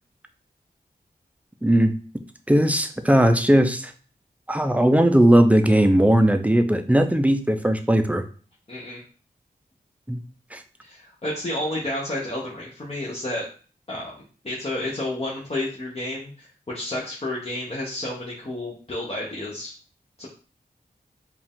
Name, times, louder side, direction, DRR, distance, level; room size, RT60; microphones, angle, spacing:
voice 1, 1.6-1.9 2.5-3.9 4.5-8.2 10.1-10.2 10.5-10.6, right 1 dB, 10° right, 7 dB, 0.6 m, -18 dB
voice 2, 8.7-9.0 10.8-13.4 13.9-14.1 14.4-19.7 20.2-20.3, left 1 dB, 40° left, -4 dB, 1.0 m, -31 dB
4.8 x 2.5 x 3.6 m, 0.39 s
cardioid pair, 55°, 16 cm